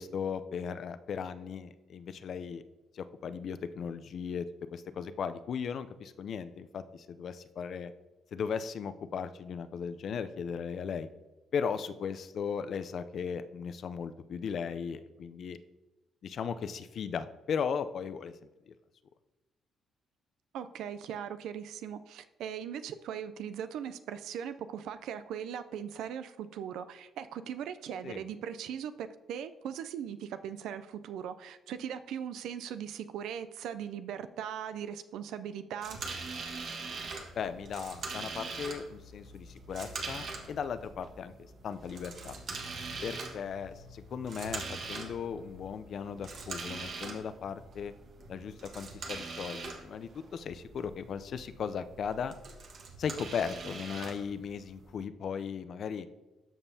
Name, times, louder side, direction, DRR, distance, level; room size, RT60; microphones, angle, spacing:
voice 1, 0.0-2.6 2.9-7.9 8.3-11.1 11.5-15.6 16.2-18.3 18.7-18.8 28.0-28.2 37.4-42.4 43.0-47.9 48.3-52.4 53.0-56.1, left 6 dB, 60° left, 11 dB, 0.5 m, -37 dB
voice 2, 20.5-36.0, right 8 dB, 85° right, 11 dB, 0.4 m, -39 dB
sound 1, 35.8-54.9, right 3 dB, 60° right, 1.4 m, -43 dB
13.0 x 5.4 x 2.8 m, 1.1 s
cardioid pair, 90°, 0 cm